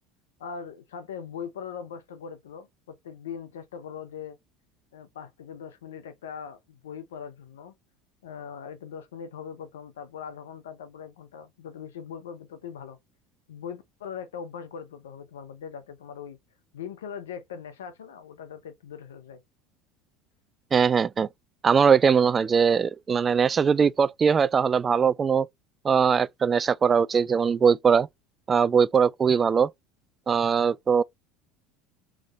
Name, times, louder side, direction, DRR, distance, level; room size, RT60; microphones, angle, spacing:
voice 1, 0.4-4.4 4.9-7.7 8.2-13.0 13.5-16.4 16.7-19.4, left 7 dB, 85° left, 0.7 m, -40 dB
voice 2, 20.7-21.3 21.6-25.5 25.8-28.1 28.5-29.7 30.3-31.0, right 6 dB, 30° right, 0.3 m, -21 dB
3.5 x 3.3 x 3.1 m
hypercardioid pair, 80°, 0 cm